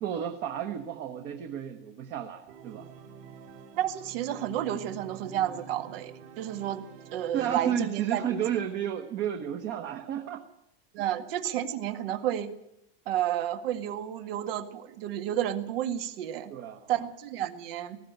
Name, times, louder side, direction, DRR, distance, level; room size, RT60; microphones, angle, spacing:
voice 1, 0.0-2.9 7.3-10.4 16.5-16.9, right 9 dB, 35° right, 5 dB, 1.2 m, -32 dB
Organ, 2.5-8.2, right 7 dB, 50° right, 4.2 m, -48 dB
voice 2, 3.8-6.8 7.1-8.4 10.9-12.5 13.1-16.5 16.9-18.0, right 11 dB, 70° right, 8 dB, 2.0 m, -31 dB
18.5 x 15.0 x 9.0 m, 0.80 s
supercardioid pair, 180°, 30 cm